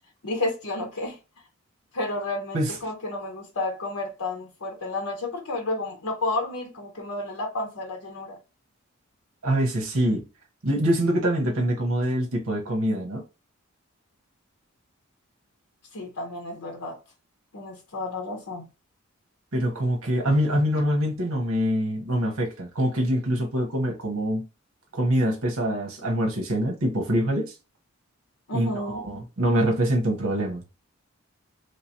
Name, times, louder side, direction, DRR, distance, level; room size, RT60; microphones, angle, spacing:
voice 1, 0.2-1.2 1.9-8.4 15.9-17.0 17.5-18.7 28.5-29.0, left 2 dB, 90° left, 0.9 m, -31 dB
voice 2, 9.4-10.3 10.6-13.2 19.5-24.4 24.9-27.5 28.5-30.6, equal, 75° right, 1.1 m, -24 dB
3.2 x 3.0 x 2.9 m
head